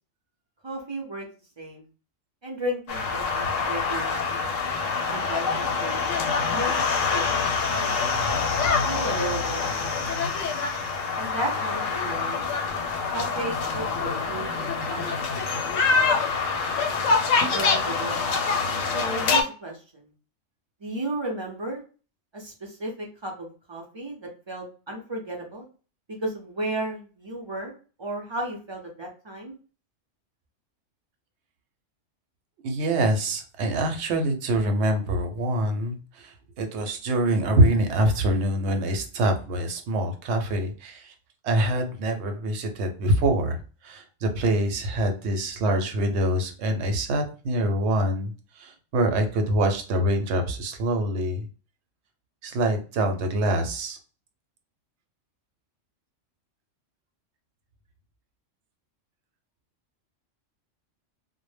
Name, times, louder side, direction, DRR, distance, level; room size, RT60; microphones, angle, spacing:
voice 1, 0.6-1.3 1.6-1.9 2.4-4.1 5.1-6.0 6.5-7.2 7.7-8.1 8.8-10.0 11.1-12.4 13.1-15.2 17.5-18.2 18.9-20.1 20.8-21.8 22.3-25.6 26.2-27.7 28.0-29.6, right 1 dB, 40° right, -1 dB, 0.3 m, -34 dB
sound 1, 2.9-19.4, left 4 dB, 90° left, 0.9 m, -25 dB
voice 2, 32.6-41.1 41.4-51.5 52.4-54.0, right 1 dB, 70° right, 5 dB, 0.8 m, -25 dB
2.1 x 2.0 x 3.1 m, 0.37 s
omnidirectional pair, 1.3 m